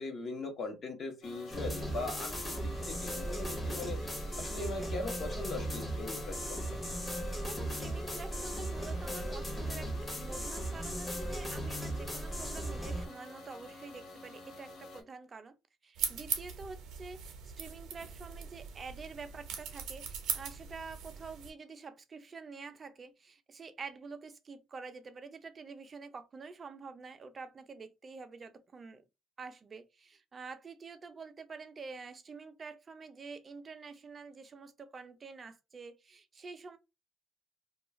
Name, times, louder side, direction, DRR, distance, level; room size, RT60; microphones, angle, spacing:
voice 1, 0.0-6.7, left 3 dB, 45° left, 0.9 m, -40 dB
sound 1, 1.2-15.0, left 1 dB, 75° left, 1.1 m, -49 dB
sound 2, 1.5-13.1, right 1 dB, 15° left, 0.8 m, -37 dB
voice 2, 7.4-15.6 15.8-29.0 29.4-36.8, right 4 dB, 30° right, 0.5 m, -47 dB
sound 3, 16.0-21.5, right 7 dB, 75° right, 0.7 m, -40 dB
2.3 x 2.3 x 3.1 m
cardioid pair, 115°, 0 cm